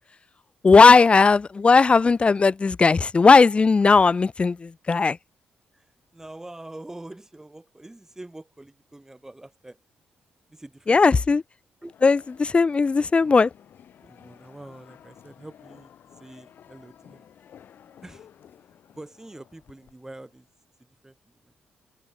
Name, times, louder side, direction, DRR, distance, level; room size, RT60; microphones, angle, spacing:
voice 1, 0.6-5.2 10.9-11.4 12.0-13.5, left 4 dB, 35° left, 0.5 m, -17 dB
voice 2, 5.7-9.8 10.5-11.2 11.8-11.9 14.0-17.3 18.0-18.3 18.9-20.5 20.8-21.5, right 2 dB, 15° right, 3.1 m, -45 dB
sound 1, 11.8-20.5, left 9 dB, 70° left, 4.4 m, -53 dB
open air
cardioid pair, 70°, 3 cm